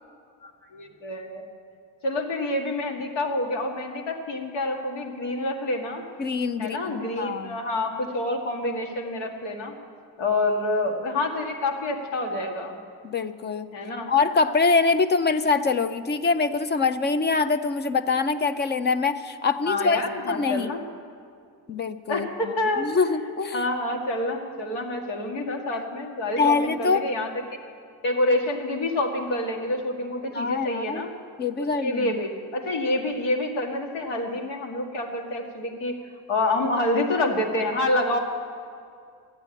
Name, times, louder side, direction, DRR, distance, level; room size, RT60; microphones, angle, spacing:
voice 1, 0.4-1.4 2.0-6.0 6.6-9.7 10.2-12.8 13.7-14.1 19.7-20.8 22.1-22.9 23.5-27.3 28.0-31.1 31.6-36.0 36.3-38.2, left 2 dB, 90° left, 2 dB, 2.1 m, -27 dB
voice 2, 6.2-7.6 13.0-13.7 14.1-20.0 20.3-20.7 21.7-23.6 26.4-27.0 30.3-31.0 31.4-32.2, left 4 dB, 25° left, 12 dB, 0.4 m, -24 dB
14.0 x 9.0 x 9.1 m, 2.3 s
cardioid pair, 140°, 46 cm